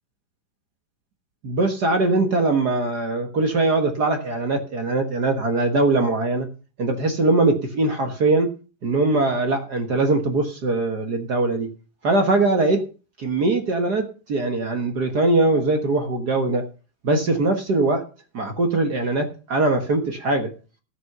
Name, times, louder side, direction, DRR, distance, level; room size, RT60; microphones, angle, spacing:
voice 1, 1.4-6.5 6.8-8.5 8.8-11.7 12.0-12.8 13.2-16.6 17.0-18.0 18.3-20.5, right 2 dB, 60° right, 5 dB, 1.0 m, -21 dB
14.0 x 6.6 x 6.7 m, 0.35 s
omnidirectional pair, 3.9 m